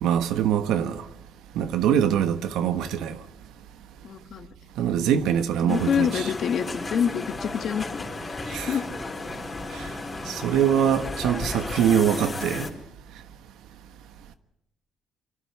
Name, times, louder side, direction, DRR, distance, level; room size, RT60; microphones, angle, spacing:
voice 1, 0.0-1.0 1.5-3.2 4.8-6.1 8.5-8.7 9.7-9.8 10.3-12.7, right 9 dB, 90° right, 1.2 m, -23 dB
voice 2, 4.0-4.5 5.3-8.9, left 8 dB, 65° left, 1.7 m, -28 dB
sound 1, 5.7-12.7, left 2 dB, 30° left, 4.1 m, -34 dB
24.5 x 11.5 x 9.7 m
cardioid pair, 90°, 0 cm